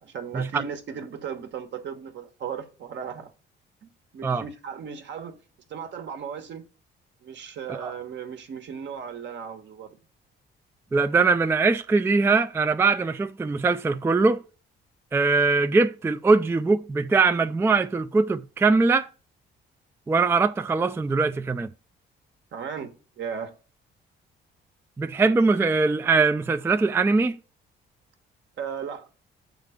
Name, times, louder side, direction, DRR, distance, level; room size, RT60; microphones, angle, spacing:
voice 1, 0.0-3.3 3.8-5.4 5.7-6.7 7.2-10.0 22.5-23.5 28.6-29.1, right 7 dB, 65° right, 1.3 m, -36 dB
voice 2, 10.9-14.4 15.1-19.1 20.1-21.7 25.0-27.4, right 4 dB, 10° right, 0.3 m, -22 dB
6.3 x 3.8 x 4.9 m
cardioid pair, 90°, 20 cm